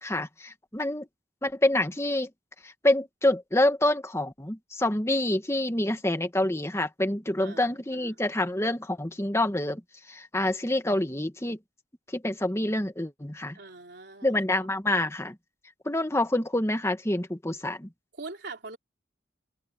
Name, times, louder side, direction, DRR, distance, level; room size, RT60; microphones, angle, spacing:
voice 1, 0.0-1.1 1.4-2.3 2.6-9.8 10.1-11.6 12.1-13.6 14.2-15.4 15.8-17.9, left 1 dB, 15° left, 1.6 m, -27 dB
voice 2, 7.4-8.2 13.5-14.3 18.2-18.8, right 3 dB, 60° right, 4.3 m, -42 dB
head